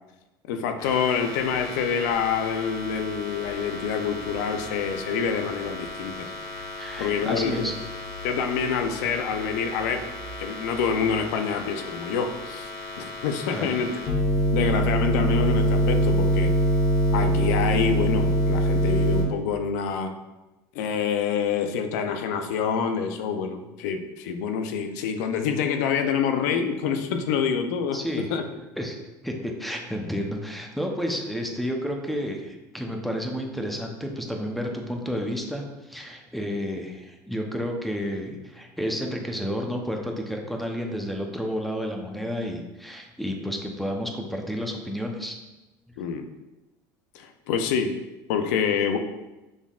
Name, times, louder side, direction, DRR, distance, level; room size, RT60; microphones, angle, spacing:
voice 1, 0.5-6.3 7.0-7.7 8.2-10.1 10.4-12.7 13.0-14.0 14.5-16.5 17.1-20.1 20.7-28.0 28.3-28.4 46.0-46.2 47.1-48.0 48.3-49.0, left 6 dB, 85° left, 6 dB, 0.5 m, -26 dB
sound 1, 0.8-19.2, equal, 45° left, 1.1 m, -27 dB
voice 2, 6.8-7.7 13.5-13.7 27.9-28.3 28.8-29.0 29.2-45.4, equal, ahead, 2 dB, 0.7 m, -31 dB
6.3 x 3.5 x 2.4 m, 1.0 s
supercardioid pair, 100°, 9 cm